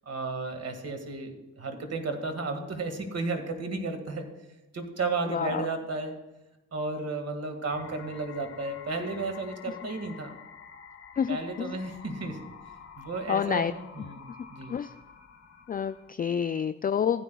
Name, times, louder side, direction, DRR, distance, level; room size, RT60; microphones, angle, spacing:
voice 1, 0.1-4.3 4.7-6.1 6.7-10.3 11.3-12.4 13.0-14.8, right 3 dB, 50° right, 6 dB, 1.9 m, -33 dB
voice 2, 5.2-5.7 11.2-11.8 13.3-13.7 14.7-14.9 15.7-17.2, left 8 dB, 30° left, 11 dB, 0.3 m, -28 dB
sound 1, 7.7-16.1, left 7 dB, 45° left, 1.0 m, -49 dB
15.0 x 9.8 x 2.3 m, 1.0 s
supercardioid pair, 50°, 32 cm